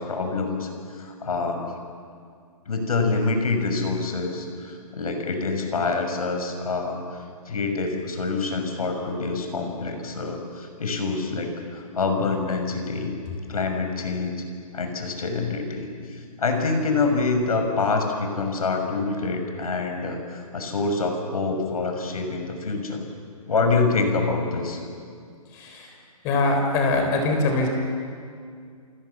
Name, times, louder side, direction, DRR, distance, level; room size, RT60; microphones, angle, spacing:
voice 1, 0.0-1.6 2.7-13.1 13.5-14.3 14.7-23.0 23.5-24.8, left 3 dB, 75° left, 4 dB, 6.6 m, -26 dB
voice 2, 25.5-25.9 26.2-27.7, left 2 dB, 15° left, 3 dB, 3.9 m, -22 dB
29.5 x 28.0 x 7.2 m, 2.2 s
hypercardioid pair, 175°, 19 cm